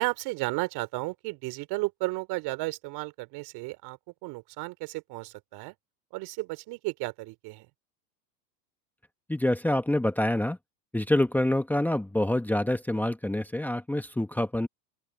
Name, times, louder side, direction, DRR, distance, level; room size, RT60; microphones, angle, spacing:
voice 1, 0.0-5.7 6.1-7.7, right 22 dB, 50° right, 3.1 m, -33 dB
voice 2, 9.3-10.6 10.9-14.7, left 1 dB, 5° left, 1.6 m, -26 dB
open air
hypercardioid pair, 110°, 50 cm